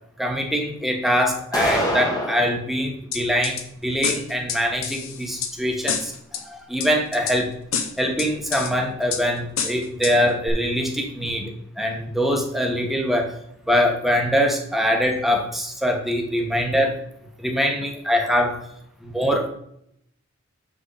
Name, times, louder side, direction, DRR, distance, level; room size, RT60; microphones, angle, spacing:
voice 1, 0.2-7.5 8.0-13.3 13.7-17.0 17.4-18.6 19.0-19.5, equal, ahead, 1 dB, 1.1 m, -23 dB
sound 1, 1.5-2.5, equal, 20° left, 1.2 m, -24 dB
sound 2, 3.1-3.6 4.0-5.5 5.9-6.4 6.8-7.4 7.7-8.7 9.1-9.2 9.6-10.1 10.5-10.6, left 7 dB, 70° left, 1.0 m, -27 dB
7.0 x 6.2 x 3.9 m, 0.72 s
head